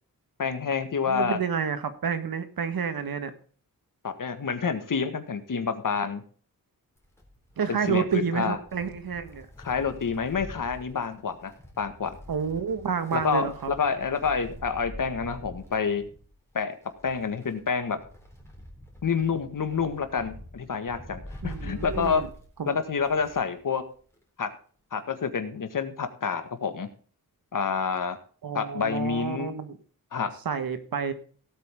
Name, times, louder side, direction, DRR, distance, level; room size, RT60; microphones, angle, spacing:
voice 1, 0.4-1.4 4.0-6.2 7.7-8.6 9.6-12.2 13.1-16.1 16.5-18.0 19.0-22.2 22.7-23.8 24.4-24.5 24.9-26.9 27.5-28.2 28.5-29.5 30.1-30.3, left 6 dB, 60° left, 9 dB, 1.8 m, -28 dB
voice 2, 1.1-3.3 7.6-9.5 12.3-13.7 21.4-22.3 22.6-22.8 28.4-29.8 30.5-31.1, right 6 dB, 75° right, 10 dB, 1.7 m, -29 dB
Wind, 7.0-23.6 23.9-24.0 25.0-25.1, left 1 dB, 5° left, 3.9 m, -45 dB
17.5 x 8.4 x 3.7 m, 0.43 s
wide cardioid pair, 155°, 36 cm